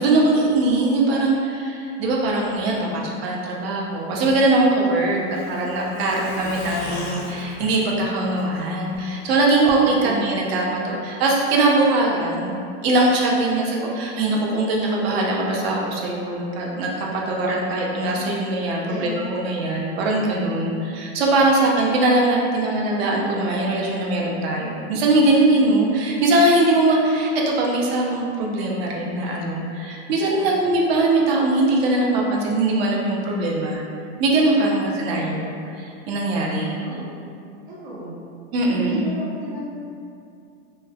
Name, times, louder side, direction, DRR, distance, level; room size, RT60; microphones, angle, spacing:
voice 1, 0.0-12.6 12.8-33.8 34.2-36.7 38.5-39.0, right 2 dB, 65° right, -2 dB, 0.6 m, -21 dB
Truck, 4.3-9.0 9.3-9.4 9.7-9.8, left 3 dB, 55° left, 0.5 m, -38 dB
voice 2, 6.1-6.7 9.7-10.2 18.8-19.2 30.4-30.6 36.6-37.1 37.7-38.1 38.7-39.6, right 2 dB, 85° right, -9 dB, 1.2 m, -36 dB
3.1 x 2.1 x 2.3 m, 2.5 s
supercardioid pair, 155°, 33 cm